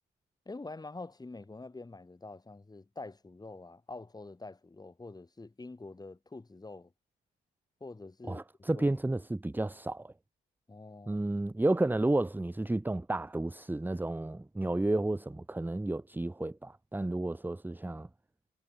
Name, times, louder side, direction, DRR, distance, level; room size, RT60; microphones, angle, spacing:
voice 1, 0.5-6.9 7.8-8.4 8.7-9.0 10.7-11.3, left 3 dB, 20° left, 6.4 m, -46 dB
voice 2, 8.3-10.1 11.1-18.1, right 2 dB, 10° right, 1.2 m, -31 dB
cardioid pair, 90°, 20 cm